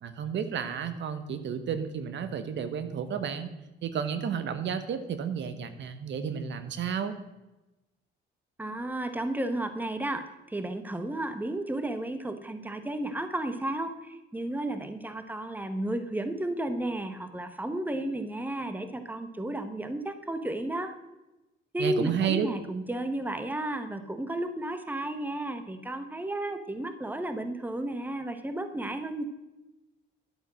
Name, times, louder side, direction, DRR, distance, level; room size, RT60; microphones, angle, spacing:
voice 1, 0.0-3.5 3.8-7.1 21.8-22.5, right 7 dB, 65° right, 10 dB, 1.2 m, -31 dB
voice 2, 8.6-20.9 21.7-29.2, right 1 dB, 10° right, 9 dB, 1.2 m, -33 dB
11.5 x 8.1 x 6.3 m, 1.0 s
cardioid pair, 90°, 20 cm